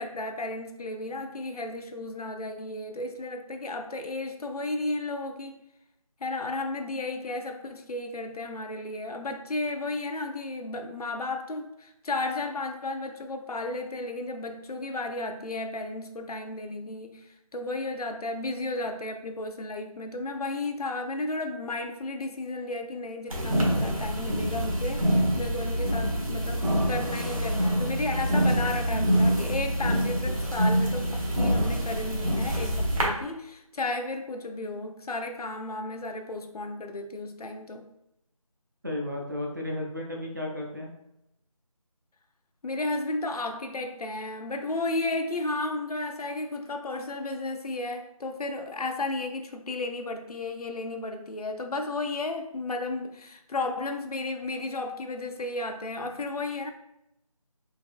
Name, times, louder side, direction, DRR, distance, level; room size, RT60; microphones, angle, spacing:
voice 1, 0.0-5.6 6.2-37.9 42.6-56.7, left 2 dB, 85° left, 0.5 m, -33 dB
sound 1, 23.3-33.0, equal, 65° right, 1.1 m, -26 dB
voice 2, 38.8-40.9, left 1 dB, 30° right, 0.5 m, -33 dB
3.4 x 3.2 x 2.4 m
figure-of-eight pair, 170°, 19 cm